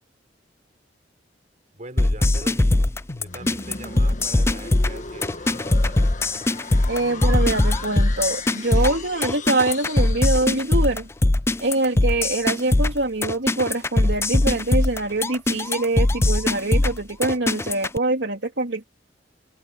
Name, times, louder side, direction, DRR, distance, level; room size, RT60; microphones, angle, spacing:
voice 1, 1.7-6.1, right 2 dB, 45° right, 4.6 m, -42 dB
sound 1, 2.0-18.0, left 2 dB, 15° left, 0.4 m, -21 dB
sound 2, 3.1-11.0, left 3 dB, 45° left, 1.7 m, -37 dB
voice 2, 6.9-11.1 11.6-18.8, right 2 dB, 75° right, 3.5 m, -24 dB
head